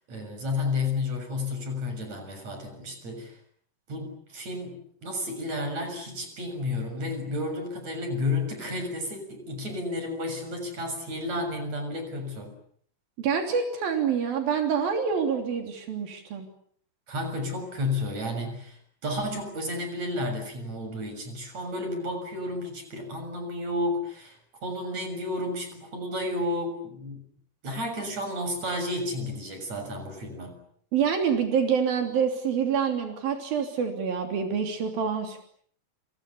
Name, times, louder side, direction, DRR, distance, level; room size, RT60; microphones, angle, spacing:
voice 1, 0.1-3.4 3.9-4.8 5.0-12.5 17.1-27.2 27.6-30.6, left 2 dB, 50° right, 7 dB, 8.1 m, -32 dB
voice 2, 13.2-16.5 30.9-35.4, right 7 dB, 85° right, 4 dB, 5.1 m, -26 dB
29.5 x 28.5 x 7.1 m, 0.63 s
omnidirectional pair, 4.0 m